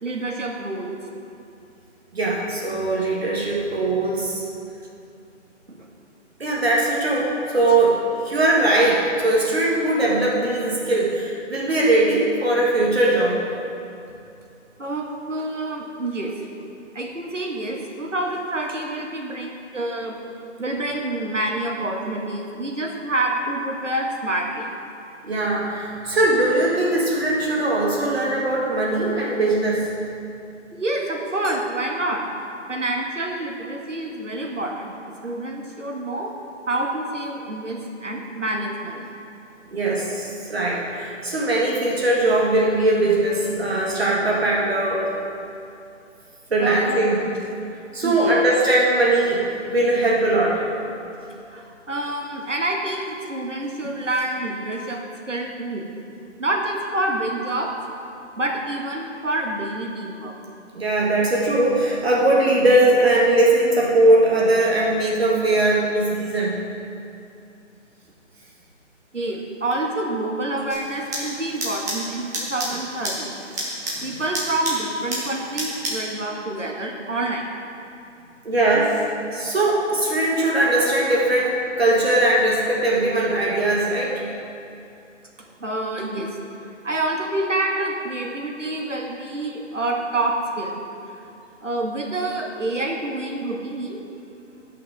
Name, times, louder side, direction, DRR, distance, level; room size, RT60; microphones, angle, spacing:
voice 1, 0.0-0.9 5.7-5.8 14.8-16.3 16.9-20.2 20.6-24.7 30.7-32.2 32.7-34.9 35.2-36.3 36.7-39.1 46.6-47.3 48.0-48.4 50.9-51.0 51.5-55.0 55.3-55.9 56.4-57.7 58.4-60.3 69.1-73.4 74.0-77.5 85.4-86.4 86.8-90.8 91.0-91.3 91.6-94.0, right 2 dB, 80° right, 0 dB, 1.6 m, -27 dB
voice 2, 2.1-4.4 6.4-13.4 25.2-29.9 39.7-45.1 46.5-47.2 47.9-50.6 60.7-66.6 78.4-79.0 79.3-84.1, right 2 dB, 55° right, -4 dB, 1.7 m, -20 dB
sound 1, 70.7-76.1, right 1 dB, 15° right, 1.0 m, -31 dB
17.0 x 5.7 x 3.5 m, 2.6 s
figure-of-eight pair, 150°, 37 cm